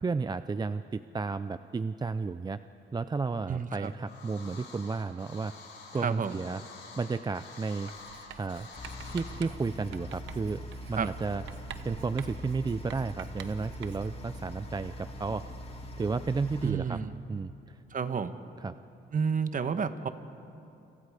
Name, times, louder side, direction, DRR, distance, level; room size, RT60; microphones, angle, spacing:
voice 1, 0.0-2.6 2.9-5.5 5.9-6.6 7.0-7.9 8.4-8.7 9.1-10.6 10.9-11.4 11.8-15.4 16.0-17.0 17.3-17.8 18.6-18.7, right 4 dB, 20° right, 12 dB, 0.5 m, -32 dB
voice 2, 3.5-3.9 6.0-6.4 10.9-11.1 16.6-17.1 17.9-18.3 19.1-20.1, right 6 dB, 40° right, 10 dB, 1.3 m, -30 dB
sound 1, 3.8-9.4, left 4 dB, 70° left, 6.9 m, -48 dB
Writing, 7.9-14.3, right 9 dB, 75° right, 1.1 m, -48 dB
sound 2, 8.8-16.7, equal, 30° left, 2.6 m, -42 dB
29.0 x 25.5 x 5.0 m, 2.7 s
cardioid pair, 90°, 20 cm